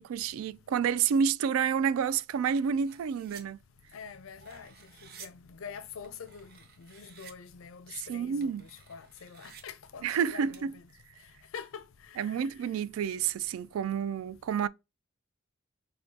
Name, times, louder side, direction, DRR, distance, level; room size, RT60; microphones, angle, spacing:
voice 1, 0.0-3.6 7.9-8.6 10.0-10.8 12.2-14.7, right 7 dB, 90° right, 0.3 m, -29 dB
sound 1, 2.8-3.4 4.2-5.3 6.0-7.3 8.3-9.6 10.5-10.6, right 7 dB, 50° right, 0.7 m, -53 dB
voice 2, 3.9-10.7 11.2-12.5, left 6 dB, 70° left, 0.5 m, -46 dB
6.3 x 2.2 x 2.7 m
head